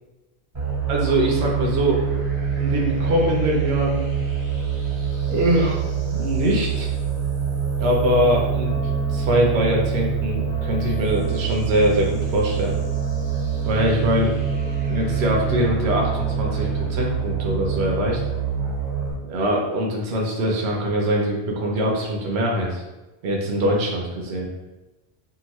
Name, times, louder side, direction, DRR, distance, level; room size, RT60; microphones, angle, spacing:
sound 1, 0.5-19.1, right 6 dB, 20° right, 0.7 m, -25 dB
voice 1, 0.9-2.0 2.6-4.0 5.3-6.9 7.8-8.7 9.1-12.7 13.6-14.3 14.9-18.2 19.2-22.8 23.2-24.5, equal, 80° right, -1 dB, 0.9 m, -23 dB
Wind instrument woodwind instrument, 8.5-17.0, left 3 dB, 85° left, 1.1 m, -41 dB
2.8 x 2.5 x 2.9 m, 1.1 s
omnidirectional pair, 1.1 m